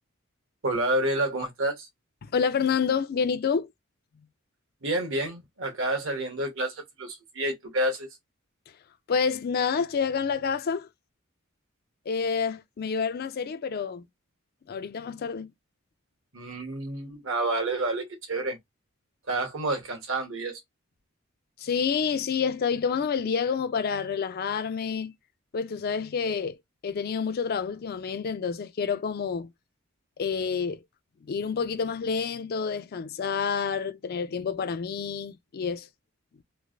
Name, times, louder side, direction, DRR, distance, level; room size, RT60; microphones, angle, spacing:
voice 1, 0.6-1.9 4.8-8.1 16.3-18.6 19.3-20.6, right 1 dB, 65° right, 1.2 m, -29 dB
voice 2, 2.2-3.7 9.1-10.9 12.1-14.0 14.7-15.5 21.6-25.1 25.5-26.6 26.8-29.5 30.2-30.8 31.3-35.9, left 6 dB, 50° left, 0.4 m, -28 dB
3.2 x 2.5 x 2.4 m
head